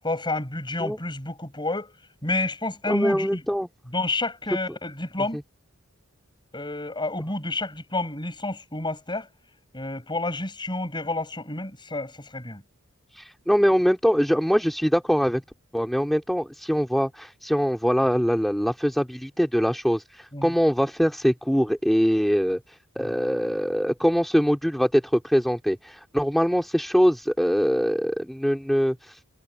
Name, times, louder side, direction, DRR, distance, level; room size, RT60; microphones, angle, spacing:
voice 1, 0.0-1.9 2.2-3.4 3.9-5.4 6.5-9.3 9.7-12.6 20.3-20.5 23.0-23.1, left 2 dB, 20° left, 7.0 m, -29 dB
voice 2, 2.9-3.7 13.1-15.4 15.7-29.2, equal, ahead, 2.5 m, -23 dB
head